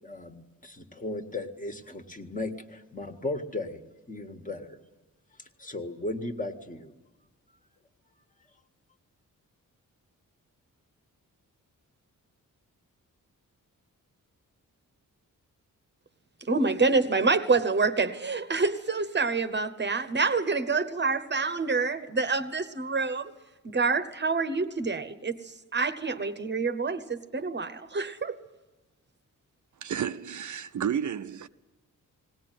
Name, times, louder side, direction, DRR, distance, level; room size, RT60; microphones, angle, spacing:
voice 1, 0.0-3.8 4.1-4.8 5.4-6.9, left 2 dB, 25° left, 1.7 m, -36 dB
voice 2, 16.5-23.3 23.6-28.4, right 4 dB, 35° right, 1.0 m, -27 dB
voice 3, 29.8-31.5, right 8 dB, 60° right, 0.7 m, -31 dB
19.5 x 18.5 x 9.3 m
wide cardioid pair, 115°, 33 cm